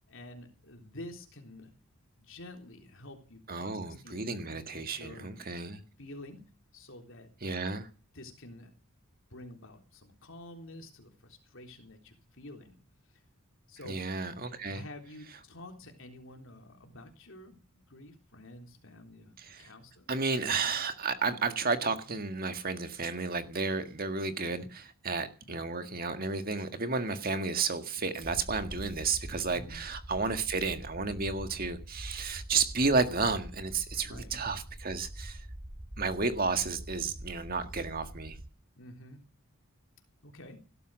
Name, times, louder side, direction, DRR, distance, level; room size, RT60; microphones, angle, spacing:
voice 1, 0.1-1.7 2.2-5.3 6.0-6.4 6.7-7.3 8.1-8.7 9.3-12.8 13.7-14.0 14.7-17.6 17.9-20.1 25.5-25.7 29.4-29.8 34.0-34.3 38.8-39.2 40.2-40.6, left 1 dB, 60° left, 3.6 m, -49 dB
voice 2, 3.5-5.8 7.4-7.9 13.9-14.8 19.4-19.7 20.1-35.5 36.0-38.4, right 4 dB, 40° right, 1.7 m, -32 dB
sound 1, 28.2-38.5, right 1 dB, 15° right, 0.9 m, -45 dB
18.0 x 12.5 x 6.4 m
head